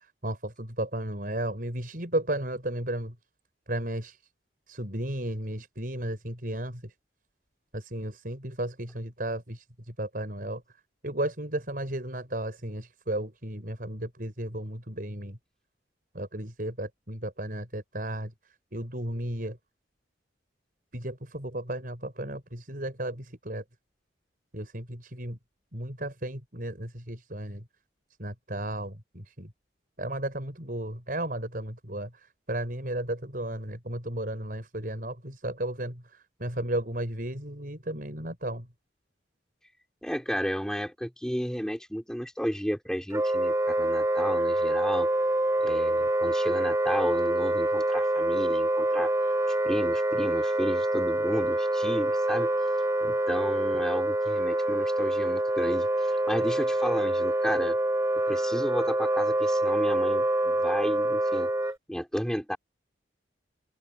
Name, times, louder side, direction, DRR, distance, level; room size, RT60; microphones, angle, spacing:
voice 1, 0.2-3.1 3.7-4.2 4.7-6.9 7.7-9.6 10.0-10.6 11.0-15.4 16.1-18.3 18.7-19.6 20.9-23.6 24.5-25.4 25.7-27.6 28.2-29.5 30.0-32.1 32.5-36.0 36.4-38.7, right 1 dB, 45° right, 5.7 m, -34 dB
voice 2, 40.0-45.1 45.6-49.1 49.6-52.5 53.0-57.8 58.3-61.5 61.9-62.6, equal, 5° left, 4.3 m, -32 dB
Wind instrument woodwind instrument, 43.1-61.8, right 1 dB, 15° right, 3.7 m, -26 dB
open air
head